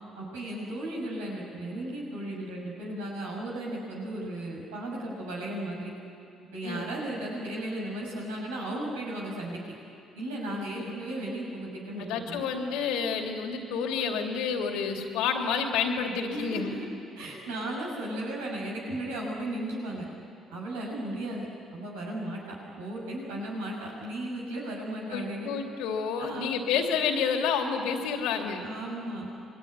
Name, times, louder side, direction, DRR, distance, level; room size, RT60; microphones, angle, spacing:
voice 1, 0.2-5.9 6.5-9.6 10.1-12.4 16.3-16.9 17.1-20.1 20.5-21.5 21.7-25.5 26.2-26.5 28.6-29.3, right 1 dB, 90° right, -2 dB, 6.0 m, -35 dB
voice 2, 12.0-16.7 25.1-28.6, left 6 dB, 80° left, 3 dB, 2.9 m, -29 dB
28.0 x 22.0 x 9.8 m, 2.6 s
hypercardioid pair, 55°, 0 cm